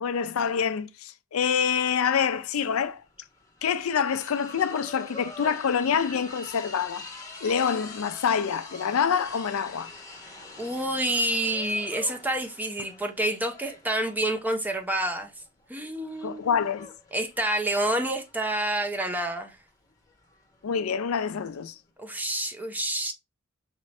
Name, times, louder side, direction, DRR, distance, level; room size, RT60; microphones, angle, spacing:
voice 1, 0.0-3.0 3.6-7.0 7.4-9.9 16.2-16.9 20.6-21.7, left 7 dB, 85° left, 0.5 m, -26 dB
sound 1, 2.5-2.6 2.8-21.7, left 3 dB, 15° left, 1.0 m, -45 dB
voice 2, 10.6-15.3 15.7-16.5 17.1-19.6 22.0-23.1, right 1 dB, 10° right, 0.7 m, -28 dB
5.0 x 2.6 x 3.2 m
head